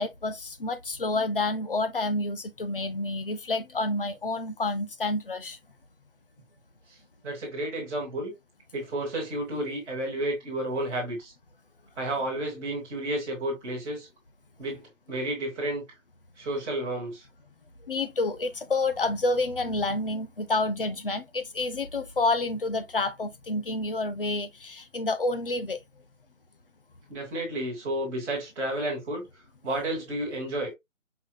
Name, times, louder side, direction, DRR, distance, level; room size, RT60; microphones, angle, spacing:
voice 1, 0.0-5.6 17.9-25.8, left 2 dB, 45° left, 0.8 m, -29 dB
voice 2, 7.2-8.3 8.7-11.3 11.9-14.1 14.6-15.8 16.4-17.2 27.1-29.3 29.6-30.7, right 1 dB, 5° right, 1.4 m, -31 dB
5.6 x 3.6 x 2.3 m
figure-of-eight pair, 170°, 40 cm